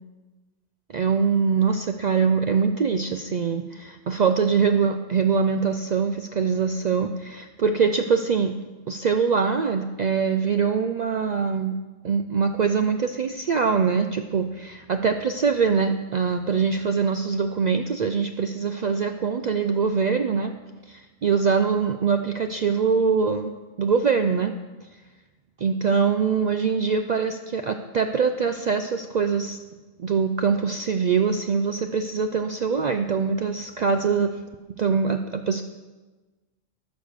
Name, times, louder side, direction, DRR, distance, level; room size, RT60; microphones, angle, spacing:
voice 1, 0.9-8.5 8.9-11.7 12.0-20.5 20.9-23.5 23.8-24.5 25.6-29.6 30.0-34.3 34.8-35.6, right 5 dB, 85° right, 7 dB, 0.3 m, -23 dB
13.0 x 5.2 x 6.4 m, 1.2 s
omnidirectional pair, 1.3 m